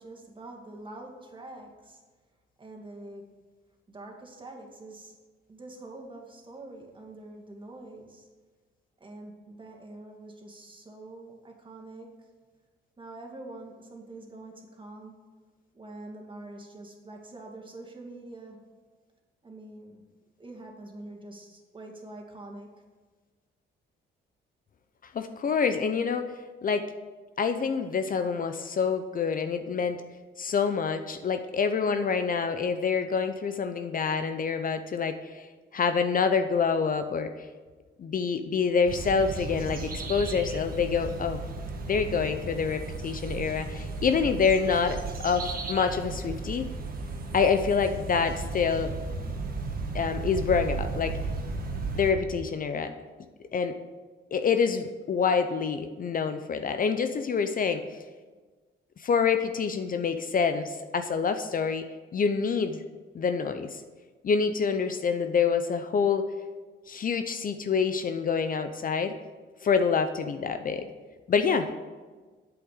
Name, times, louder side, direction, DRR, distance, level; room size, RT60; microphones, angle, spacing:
voice 1, 0.0-2.0 2.6-3.2 3.9-5.1 5.5-8.3 9.0-12.1 13.0-15.1 15.7-18.6 19.4-20.0 20.4-22.7, right 2 dB, 25° right, 1 dB, 2.2 m, -45 dB
voice 2, 25.1-26.3 26.6-26.8 27.4-30.0 30.4-35.5 35.7-37.3 38.0-41.4 41.9-46.7 47.3-48.9 49.9-51.2 51.9-52.9 53.5-53.8 54.3-57.8 59.0-61.9 62.1-62.8 63.1-63.8 64.2-66.3 66.9-69.1 69.6-70.9 71.3-71.8, left 5 dB, 45° left, 8 dB, 0.7 m, -26 dB
sound 1, 38.9-52.1, right 3 dB, 45° right, 1.6 m, -35 dB
8.5 x 7.9 x 6.6 m, 1.4 s
cardioid pair, 90°, 20 cm